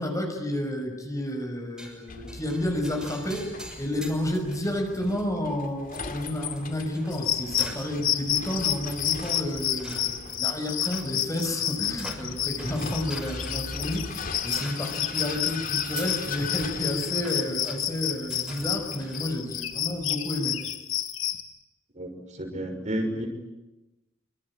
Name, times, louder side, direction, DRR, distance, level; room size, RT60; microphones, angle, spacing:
voice 1, 0.0-20.5, left 1 dB, 15° left, 4 dB, 5.7 m, -31 dB
sound 1, 1.8-19.3, equal, 5° right, 6.5 m, -45 dB
Vehicle, 2.1-20.1, left 4 dB, 45° left, 2.8 m, -40 dB
sound 2, 7.1-21.4, left 11 dB, 70° left, 2.1 m, -30 dB
voice 2, 21.9-23.3, right 1 dB, 40° right, 4 dB, 6.1 m, -31 dB
26.5 x 26.0 x 8.6 m, 1.0 s
head